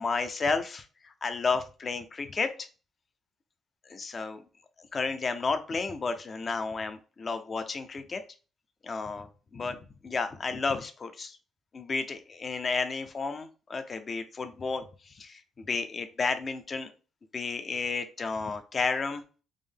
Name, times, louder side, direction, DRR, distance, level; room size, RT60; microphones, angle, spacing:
voice 1, 0.0-2.7 3.9-4.4 4.8-8.2 8.8-11.4 11.7-16.9 17.3-19.2, left 4 dB, 40° left, 8 dB, 0.5 m, -32 dB
3.6 x 2.1 x 3.4 m, 0.35 s
cardioid pair, 90°, 0 cm